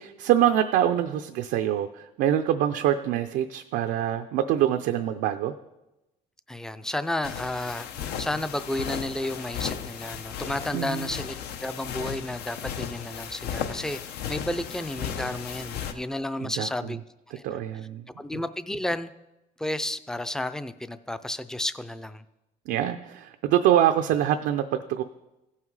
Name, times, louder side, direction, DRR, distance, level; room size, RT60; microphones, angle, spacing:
voice 1, 0.0-5.5 10.7-11.1 16.4-16.7 17.4-18.0 22.7-25.0, right 11 dB, 85° right, 7 dB, 0.5 m, -25 dB
voice 2, 6.5-14.0 14.3-17.0 17.3-17.6 18.2-19.1 19.6-22.2, left 1 dB, 5° left, 13 dB, 0.4 m, -32 dB
sound 1, 7.2-15.9, left 8 dB, 75° left, 0.8 m, -35 dB
15.5 x 5.7 x 4.7 m, 0.96 s
cardioid pair, 110°, 17 cm